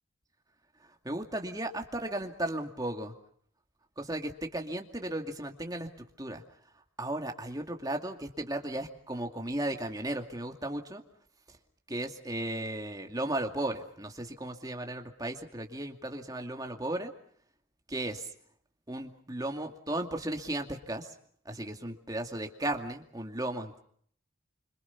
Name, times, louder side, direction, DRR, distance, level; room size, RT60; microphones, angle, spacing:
voice 1, 1.0-3.1 4.0-5.9 6.2-6.4 7.0-11.0 11.9-17.1 17.9-18.3 18.9-21.1 21.5-23.8, right 1 dB, 20° right, 4 dB, 2.4 m, -35 dB
26.5 x 26.0 x 5.9 m, 0.62 s
head